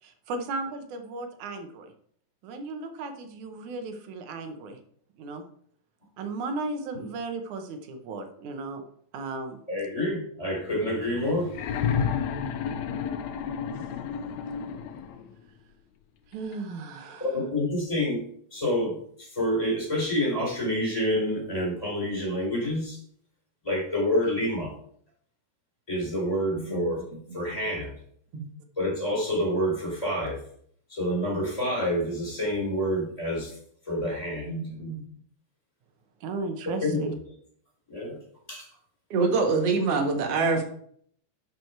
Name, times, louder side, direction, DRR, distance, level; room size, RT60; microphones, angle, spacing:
voice 1, 0.0-1.9 2.4-4.8 5.2-5.4 6.2-8.8 9.1-9.6 16.3-17.3 36.2-37.1, right 3 dB, 85° right, 6 dB, 2.6 m, -35 dB
voice 2, 9.7-11.5 17.2-18.2 18.5-23.0 23.6-24.7 25.9-27.0 27.3-27.9 28.8-30.4 30.9-33.5 33.9-34.5 36.8-37.2 37.9-38.2 38.5-38.7, left 1 dB, 10° left, -3 dB, 4.6 m, -28 dB
sound 1, 11.5-15.3 16.5-16.6, left 7 dB, 75° left, 2.0 m, -30 dB
voice 3, 34.5-35.0 39.1-40.6, right 4 dB, 55° right, 3 dB, 2.5 m, -25 dB
12.0 x 6.3 x 4.7 m, 0.64 s
omnidirectional pair, 3.3 m